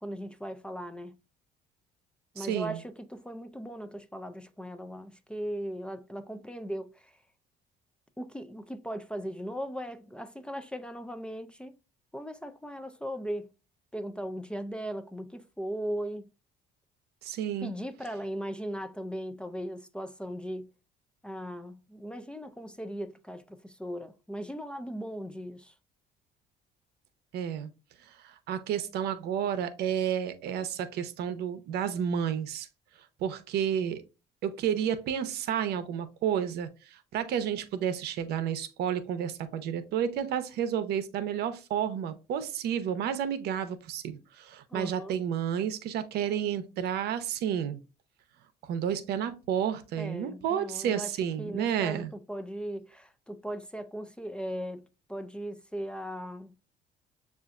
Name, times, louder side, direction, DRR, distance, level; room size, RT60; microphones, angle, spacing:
voice 1, 0.0-1.2 2.3-7.2 8.2-11.8 12.1-13.5 13.9-16.3 17.6-20.7 21.2-25.7 44.7-45.2 50.0-51.1 51.4-56.6, equal, 5° left, 0.3 m, -38 dB
voice 2, 2.4-2.8 17.2-17.7 27.3-27.7 28.2-32.7 33.2-34.0 34.4-47.8 48.7-52.1, right 9 dB, 75° right, 0.6 m, -31 dB
6.8 x 2.5 x 2.4 m
cardioid pair, 110°, 17 cm